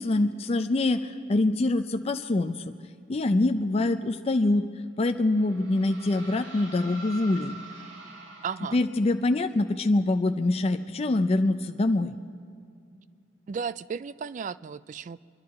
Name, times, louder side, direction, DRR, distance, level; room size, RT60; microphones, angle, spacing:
voice 1, 0.0-2.7 3.1-4.7 5.0-7.6 8.7-12.1, left 2 dB, 30° left, 7 dB, 0.4 m, -25 dB
sound 1, 5.0-9.3, right 2 dB, 90° right, 2.9 m, -45 dB
voice 2, 8.4-8.8 13.5-15.2, right 6 dB, 40° right, 17 dB, 0.3 m, -34 dB
25.5 x 11.5 x 4.7 m, 2.3 s
head